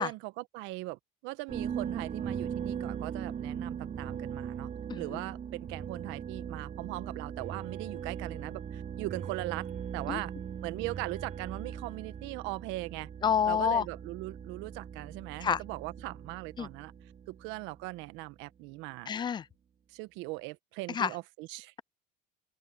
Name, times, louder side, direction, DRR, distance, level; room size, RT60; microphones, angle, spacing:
voice 1, 0.0-4.7 4.9-9.7 9.9-10.3 10.6-13.1 13.4-16.9 17.3-19.1 19.9-21.7, right 21 dB, 70° right, 1.4 m, -39 dB
sound 1, 1.5-18.0, right 8 dB, 40° right, 3.9 m, -40 dB
voice 2, 4.9-5.2 10.1-10.2 13.2-13.9 15.4-15.6 16.6-16.7 19.1-19.5 20.9-21.1, left 8 dB, 20° left, 0.4 m, -28 dB
open air
supercardioid pair, 90°, 20 cm